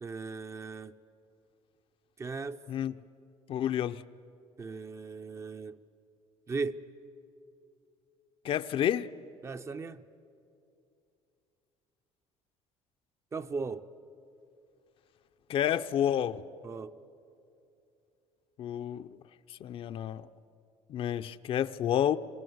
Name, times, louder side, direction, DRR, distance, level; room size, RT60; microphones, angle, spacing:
voice 1, 0.0-0.9 2.2-2.6 4.6-5.8 6.5-6.8 9.4-10.0 13.3-13.8 16.6-17.0, right 4 dB, 25° right, 11 dB, 0.6 m, -37 dB
voice 2, 3.5-4.0 8.4-9.1 15.5-16.4 18.6-19.1 19.5-20.3 20.9-22.2, left 10 dB, 50° left, 11 dB, 0.6 m, -30 dB
26.0 x 19.0 x 7.9 m, 2.6 s
cardioid pair, 135°, 12 cm